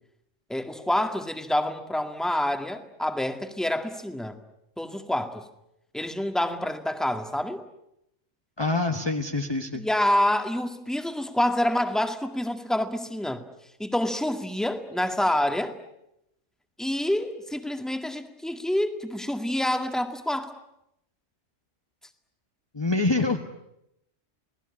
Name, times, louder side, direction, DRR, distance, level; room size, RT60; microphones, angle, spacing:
voice 1, 0.5-4.4 4.8-5.4 5.9-7.6 9.7-13.4 13.8-15.7 16.8-20.5, left 1 dB, ahead, 7 dB, 1.9 m, -27 dB
voice 2, 8.6-9.8 22.7-23.5, left 2 dB, 20° left, 3 dB, 1.4 m, -25 dB
29.5 x 19.0 x 9.9 m, 0.82 s
omnidirectional pair, 1.3 m